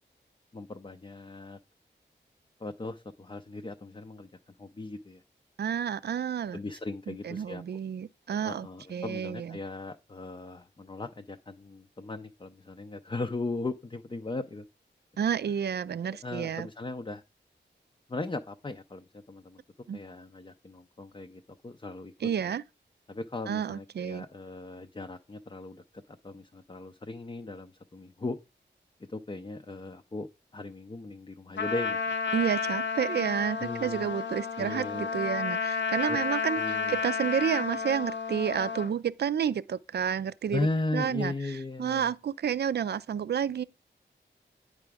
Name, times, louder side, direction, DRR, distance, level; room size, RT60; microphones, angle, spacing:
voice 1, 0.5-1.6 2.6-4.3 4.6-5.2 6.5-7.6 8.4-14.7 16.2-17.2 18.1-19.6 19.9-22.1 23.1-28.4 29.1-30.3 30.5-32.1 33.6-34.1 34.5-35.1 36.1-36.2 36.6-36.9 40.5-42.1, left 2 dB, 25° left, 0.5 m, -37 dB
voice 2, 5.6-6.6 7.1-9.6 15.2-16.7 19.9-20.0 22.2-22.6 23.5-24.2 32.3-40.7 40.9-41.3 41.8-43.6, right 8 dB, 60° right, 0.4 m, -30 dB
Trumpet, 31.6-38.9, left 5 dB, 70° left, 0.7 m, -31 dB
8.8 x 4.9 x 3.5 m
cardioid pair, 40°, 19 cm